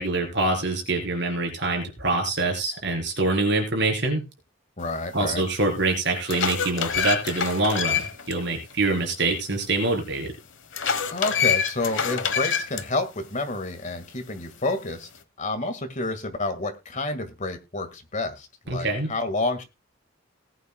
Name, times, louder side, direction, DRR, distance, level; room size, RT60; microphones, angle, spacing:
voice 1, 0.0-4.2 5.1-8.0 8.3-10.3 18.7-19.1, right 2 dB, 60° right, 3 dB, 4.3 m, -25 dB
voice 2, 4.8-5.4 11.1-15.1 15.4-19.6, left 2 dB, 40° left, 8 dB, 1.9 m, -29 dB
sound 1, 5.3-5.4 6.0-8.3 8.7-8.8 10.7-12.8, left 7 dB, 70° left, 1.2 m, -26 dB
19.0 x 9.1 x 2.3 m, 0.26 s
head